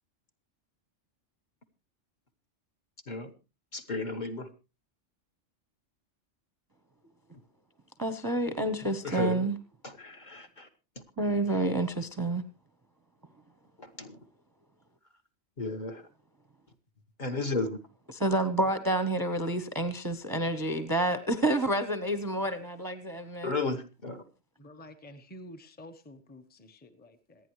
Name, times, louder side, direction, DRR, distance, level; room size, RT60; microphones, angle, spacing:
voice 1, 3.7-4.5 9.0-9.5 9.8-10.7 13.8-14.2 15.6-16.0 17.2-17.8 23.4-24.2, left 3 dB, 40° left, 5 dB, 1.4 m, -33 dB
voice 2, 8.0-9.6 11.2-12.4 18.1-23.5, right 1 dB, 20° right, 10 dB, 0.8 m, -29 dB
voice 3, 24.6-27.5, left 1 dB, 10° left, 8 dB, 0.9 m, -50 dB
26.5 x 9.3 x 3.1 m, 0.29 s
omnidirectional pair, 1.3 m